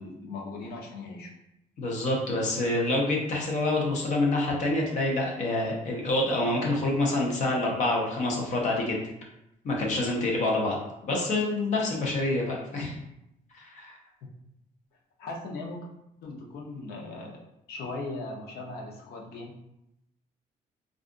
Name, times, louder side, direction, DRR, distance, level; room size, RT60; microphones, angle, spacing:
voice 1, 0.0-1.3 15.2-15.8 16.2-17.4 17.7-19.6, left 2 dB, 85° left, 0 dB, 0.7 m, -38 dB
voice 2, 1.8-9.0 9.6-10.8 11.0-13.0 13.5-14.0, left 2 dB, 50° left, -1 dB, 0.8 m, -27 dB
2.4 x 2.4 x 3.7 m, 0.83 s
cardioid pair, 165°, 16 cm